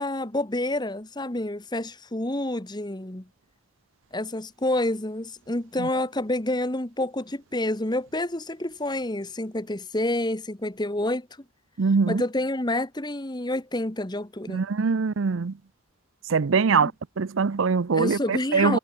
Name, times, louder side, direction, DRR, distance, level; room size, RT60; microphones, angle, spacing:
voice 1, 0.0-3.3 4.1-11.3 12.1-14.7 16.8-16.9 17.9-18.8, left 1 dB, 20° left, 1.3 m, -28 dB
voice 2, 11.8-12.2 14.5-15.5 16.3-16.9 17.2-18.8, right 5 dB, 70° right, 0.6 m, -23 dB
head